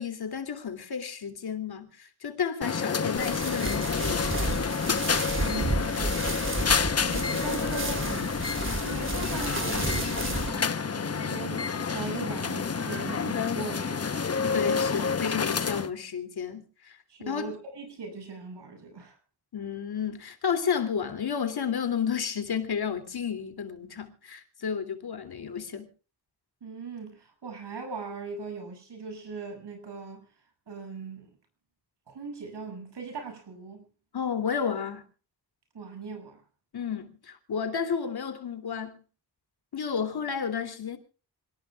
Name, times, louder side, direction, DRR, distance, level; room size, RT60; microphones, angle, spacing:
voice 1, 0.0-4.8 14.5-17.0 17.3-17.5 19.5-25.9 34.1-35.0 36.7-39.0 39.7-41.0, left 7 dB, 65° left, 3.1 m, -32 dB
sound 1, 2.6-15.9, left 5 dB, 35° left, 1.1 m, -29 dB
sound 2, 3.2-10.5, right 2 dB, 30° right, 3.4 m, -32 dB
voice 2, 5.4-8.3 8.8-14.3 17.1-19.2 26.6-30.3 30.7-31.3 32.1-33.8 35.7-36.4, right 4 dB, 80° right, 7.8 m, -40 dB
26.5 x 19.0 x 2.4 m
wide cardioid pair, 115°, 41 cm